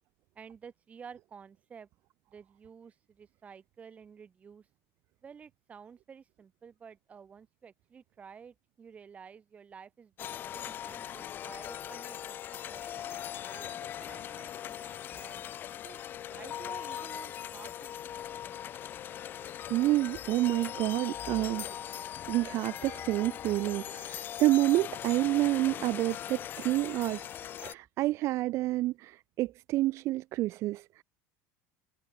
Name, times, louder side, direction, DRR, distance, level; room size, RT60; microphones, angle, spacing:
voice 1, 0.3-1.9 2.3-4.7 5.2-12.8 13.5-15.4 15.8-16.0 16.3-18.6, right 6 dB, 20° right, 6.6 m, -52 dB
sound 1, 10.2-27.7, left 10 dB, 30° left, 0.8 m, -40 dB
voice 2, 19.7-21.8 22.3-27.3 27.6-31.0, right 17 dB, 45° right, 1.8 m, -29 dB
cardioid pair, 160°, 6 cm